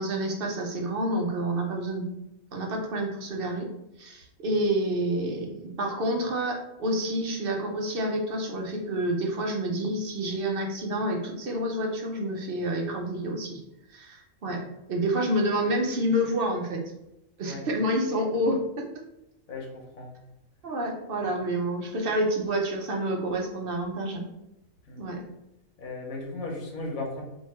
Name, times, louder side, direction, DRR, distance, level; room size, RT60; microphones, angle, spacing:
voice 1, 0.0-2.1 2.5-3.7 4.0-13.6 13.9-14.6 14.9-16.8 17.4-18.9 20.6-24.2 25.0-25.2, right 1 dB, 50° right, 1 dB, 0.8 m, -28 dB
voice 2, 19.5-20.1 24.9-25.0 25.8-27.2, left 2 dB, 80° left, 0 dB, 1.4 m, -36 dB
3.3 x 2.7 x 4.2 m, 0.88 s
omnidirectional pair, 1.4 m